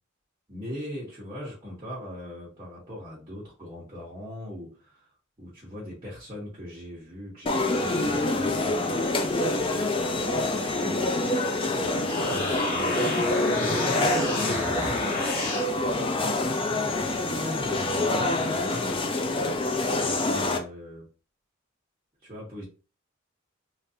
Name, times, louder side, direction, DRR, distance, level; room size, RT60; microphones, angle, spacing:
voice 1, 0.5-5.1 5.4-9.0 9.5-11.3 11.8-15.2 15.7-21.1 22.2-22.6, left 1 dB, 25° right, -7 dB, 1.0 m, -40 dB
sound 1, 7.5-20.6, left 2 dB, 25° left, 0.4 m, -26 dB
sound 2, 11.9-15.7, left 1 dB, 40° left, 1.3 m, -31 dB
3.2 x 2.5 x 2.7 m, 0.36 s
head